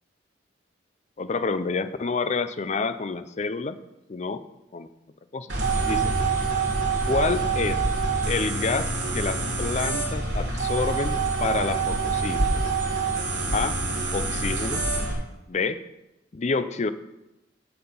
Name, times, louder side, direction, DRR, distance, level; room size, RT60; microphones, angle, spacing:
voice 1, 1.2-3.8 4.1-4.5 4.7-4.9 5.3-5.5 5.9-6.1 7.1-7.8 8.3-12.5 13.5-13.8 14.1-14.8 15.5-15.8 16.3-16.9, left 4 dB, 40° left, 12 dB, 0.5 m, -28 dB
sound 1, 5.5-15.1, right 3 dB, 80° right, 2.8 m, -26 dB
7.7 x 5.8 x 7.0 m, 0.94 s
head